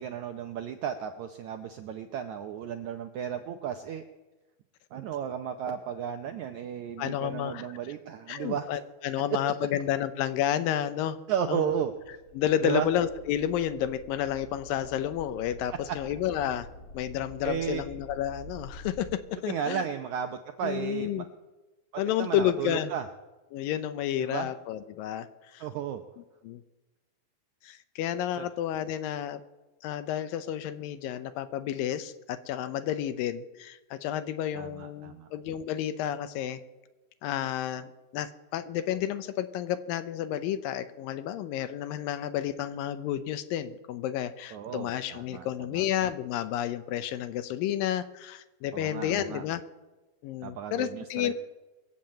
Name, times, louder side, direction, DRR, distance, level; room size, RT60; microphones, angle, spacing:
voice 1, 0.0-4.0 4.9-8.7 11.3-11.9 12.6-12.9 17.4-17.8 19.5-21.2 22.2-23.0 24.2-24.5 25.6-26.0 28.4-28.5 34.5-35.3 44.5-45.8 48.7-49.4 50.4-51.3, right 8 dB, 80° right, 6 dB, 1.7 m, -34 dB
voice 2, 7.0-7.6 8.3-11.2 11.5-11.7 12.3-16.7 16.9-19.8 20.6-21.3 22.0-22.9 23.5-25.3 25.5-25.6 26.4-26.6 27.6-29.4 29.8-36.6 37.2-49.6 50.2-51.3, left 11 dB, 80° left, 12 dB, 2.3 m, -31 dB
sound 1, 11.9-19.1, equal, 50° left, 1.4 m, -47 dB
22.0 x 7.5 x 8.7 m, 1.1 s
omnidirectional pair, 4.3 m